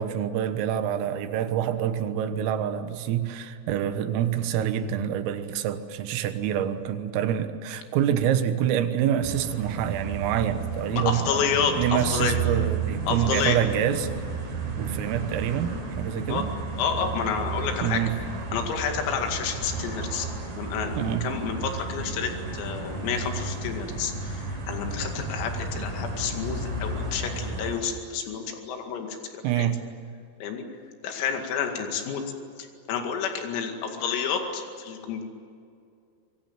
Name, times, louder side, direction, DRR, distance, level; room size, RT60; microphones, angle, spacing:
voice 1, 0.0-14.1 14.8-16.5 17.8-18.1 21.0-21.3 29.4-29.8, right 10 dB, 80° right, 9 dB, 3.9 m, -26 dB
sound 1, 9.2-27.8, right 3 dB, 40° right, 5.2 m, -33 dB
voice 2, 10.9-12.4 13.1-13.6 16.3-16.5 16.8-18.0 18.5-20.3 20.6-29.7 30.4-30.7 31.0-32.2 32.9-35.2, left 6 dB, 85° left, 4 dB, 4.9 m, -29 dB
25.0 x 22.5 x 9.0 m, 2.3 s
omnidirectional pair, 5.9 m